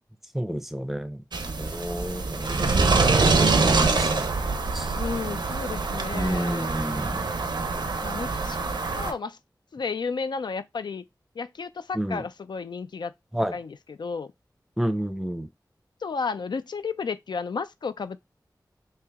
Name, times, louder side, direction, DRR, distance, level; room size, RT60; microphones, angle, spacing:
voice 1, 0.3-1.2 1.5-2.9 3.1-4.5 4.7-5.0 6.1-7.2 11.9-12.2 13.3-13.5 14.8-15.5, equal, 5° right, 0.6 m, -30 dB
sound 1, 1.3-9.1, right 3 dB, 85° right, 0.6 m, -25 dB
voice 2, 4.9-6.8 7.9-8.6 9.0-9.4 9.7-11.0 11.4-13.1 13.5-14.3 16.0-18.2, left 5 dB, 80° left, 0.4 m, -32 dB
3.1 x 2.8 x 3.5 m
wide cardioid pair, 50°, 7 cm